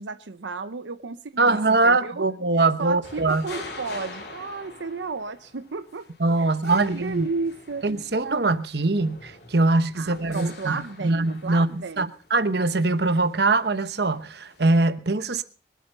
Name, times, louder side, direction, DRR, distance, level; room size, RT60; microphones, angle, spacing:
voice 1, 0.0-2.2 2.8-6.1 6.4-7.9 9.9-12.1, right 4 dB, 85° right, 0.8 m, -33 dB
voice 2, 1.4-3.5 6.2-7.3 7.8-15.4, right 2 dB, 65° right, 1.0 m, -22 dB
sound 1, 3.0-14.7, left 3 dB, 60° left, 3.4 m, -45 dB
23.5 x 8.6 x 5.4 m
head